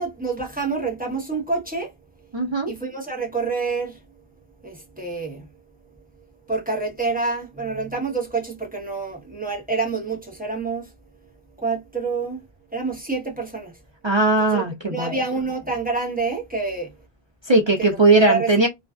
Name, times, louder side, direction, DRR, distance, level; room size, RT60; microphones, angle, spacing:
voice 1, 0.0-1.9 2.7-4.0 4.6-5.5 6.5-10.9 11.6-12.4 12.7-13.7 14.4-16.9 17.8-18.7, right 4 dB, 10° right, 0.7 m, -27 dB
voice 2, 2.3-2.7 14.0-15.2 17.4-18.7, right 2 dB, 45° right, 0.3 m, -18 dB
2.4 x 2.3 x 2.2 m
omnidirectional pair, 1.1 m